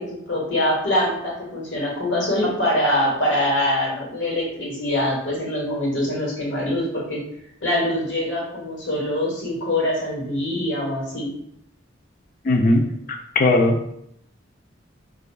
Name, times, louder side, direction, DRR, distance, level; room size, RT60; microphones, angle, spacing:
voice 1, 0.0-7.2 7.6-11.3, left 1 dB, 80° left, -3 dB, 1.2 m, -24 dB
voice 2, 12.4-12.9 13.4-13.9, left 2 dB, 45° left, 5 dB, 0.4 m, -18 dB
4.3 x 2.4 x 2.3 m, 0.74 s
head